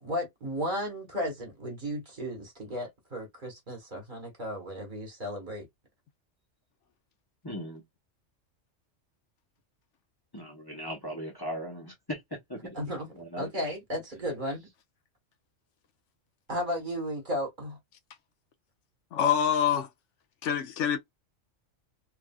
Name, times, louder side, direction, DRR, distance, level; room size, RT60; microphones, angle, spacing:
voice 1, 0.0-5.7 12.7-14.7 16.5-17.8, equal, 45° right, 1.4 m, -34 dB
voice 2, 7.4-7.8 10.3-12.2 12.5-12.6 13.2-13.5, equal, 20° left, 0.8 m, -38 dB
voice 3, 19.1-19.9 20.4-21.0, left 8 dB, 75° left, 0.9 m, -25 dB
3.3 x 2.5 x 2.2 m
omnidirectional pair, 1.3 m